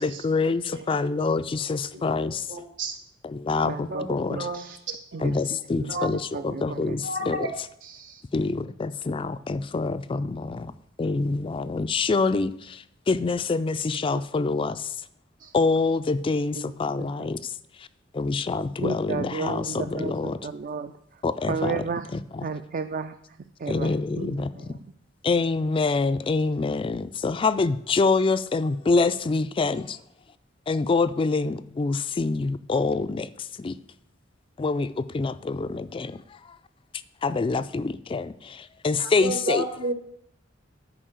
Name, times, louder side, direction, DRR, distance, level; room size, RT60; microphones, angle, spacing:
voice 1, 0.0-2.5 3.2-4.5 5.2-7.5 8.3-10.7 11.0-14.9 15.5-17.5 18.1-20.4 21.2-21.9 22.1-22.5 23.7-24.7 25.2-30.0 30.7-33.8 34.6-36.2 37.2-39.7, left 3 dB, 25° left, 12 dB, 0.3 m, -26 dB
voice 2, 2.5-2.9 3.9-4.6 4.9-5.0 5.9-6.1 7.0-7.5 39.0-39.9, right 1 dB, 65° right, 6 dB, 1.6 m, -31 dB
voice 3, 3.6-4.8 5.1-5.3 5.8-5.9 6.3-6.9 7.2-7.4 7.8-8.2 15.4-15.5 16.6-16.7 17.0-17.3 18.8-20.9 21.5-22.1 22.4-23.1 23.6-24.4, right 4 dB, 45° right, 8 dB, 0.4 m, -33 dB
10.0 x 4.9 x 7.7 m, 0.72 s
head